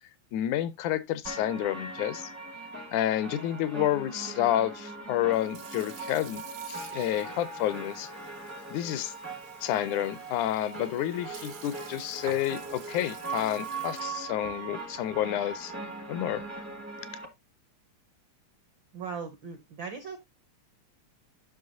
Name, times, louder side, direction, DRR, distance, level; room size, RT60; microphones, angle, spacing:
voice 1, 0.3-2.3 2.9-8.1 8.7-9.1 9.6-15.7 16.1-16.4, left 12 dB, 85° left, 2.0 m, -30 dB
sound 1, 1.2-17.3, right 3 dB, 15° right, 0.4 m, -40 dB
Sink (filling or washing) / Fill (with liquid), 5.2-16.7, right 9 dB, 90° right, 2.7 m, -51 dB
voice 2, 18.9-20.2, right 5 dB, 75° right, 1.1 m, -38 dB
9.6 x 6.2 x 2.7 m
omnidirectional pair, 3.4 m